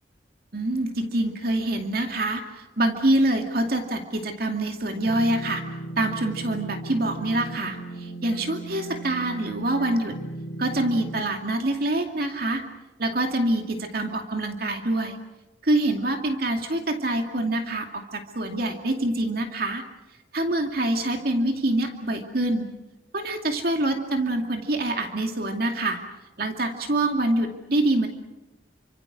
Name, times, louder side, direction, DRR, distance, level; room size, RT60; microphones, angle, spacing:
voice 1, 0.5-5.6 6.0-10.2 10.6-12.6 13.0-15.2 15.6-19.8 20.3-22.7 23.1-26.0 26.4-28.1, right 1 dB, 55° right, 4 dB, 2.5 m, -25 dB
sound 1, 5.0-11.2, right 1 dB, 65° left, 5.0 m, -36 dB
29.5 x 25.5 x 6.4 m, 1.0 s
head